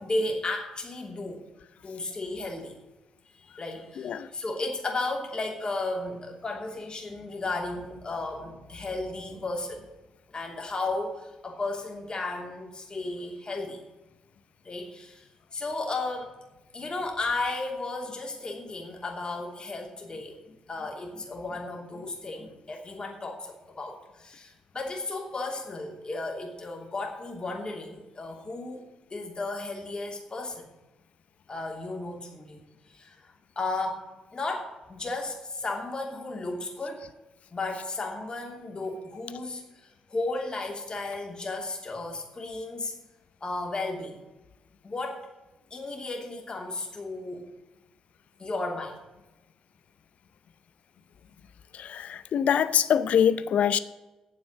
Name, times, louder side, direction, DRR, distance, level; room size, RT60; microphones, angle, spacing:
voice 1, 0.0-1.4 1.8-2.7 3.4-9.9 10.3-13.8 14.6-16.3 16.7-30.7 31.5-32.6 32.9-34.0 34.3-37.0 37.5-42.9 43.4-44.2 44.8-45.3 45.7-47.5 48.4-49.0, left 2 dB, 35° left, 0 dB, 2.9 m, -34 dB
voice 2, 4.0-4.3 51.7-53.8, left 8 dB, 60° left, 14 dB, 0.6 m, -24 dB
9.3 x 7.3 x 8.2 m, 1.1 s
hypercardioid pair, 45°, 2 cm